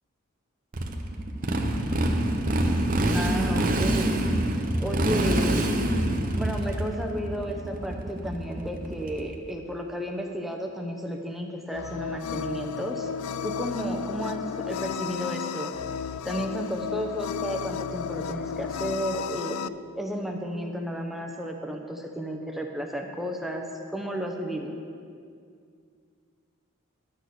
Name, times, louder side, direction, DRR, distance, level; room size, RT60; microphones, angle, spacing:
Motorcycle, 0.7-9.4, right 1 dB, 40° right, 0.8 m, -26 dB
voice 1, 3.1-4.2 4.8-5.8 6.3-13.1 13.4-15.7 16.2-19.6 20.0-23.6 23.9-24.7, equal, ahead, 1 dB, 0.8 m, -32 dB
sound 1, 11.7-19.7, left 7 dB, 85° left, 0.3 m, -33 dB
11.0 x 6.3 x 6.8 m, 2.3 s
head